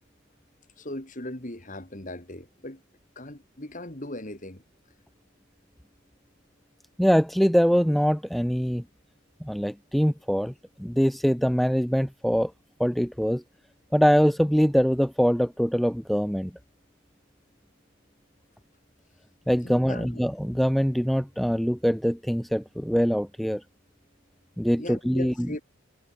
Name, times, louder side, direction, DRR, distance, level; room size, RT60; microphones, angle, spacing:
voice 1, 0.8-2.8 3.2-4.6 19.6-20.2 24.8-25.6, left 1 dB, 35° left, 2.5 m, -38 dB
voice 2, 7.0-8.8 9.4-10.5 10.8-12.5 12.8-13.4 13.9-16.5 19.5-23.6 24.6-25.3, equal, ahead, 0.4 m, -23 dB
head